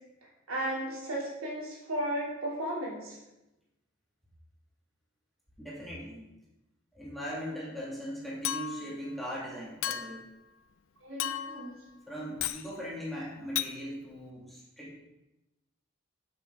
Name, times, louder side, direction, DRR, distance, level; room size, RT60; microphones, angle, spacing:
voice 1, 0.5-3.2 11.0-11.8, right 1 dB, 80° right, -4 dB, 2.7 m, -34 dB
voice 2, 5.6-6.3 6.9-10.2 12.1-15.0, equal, ahead, -6 dB, 2.0 m, -39 dB
Chink clink, 8.4-9.0 9.8-10.3 11.2-11.7 12.4-12.7 13.6-13.7, left 11 dB, 65° left, 0.4 m, -34 dB
9.8 x 6.1 x 3.6 m, 0.96 s
head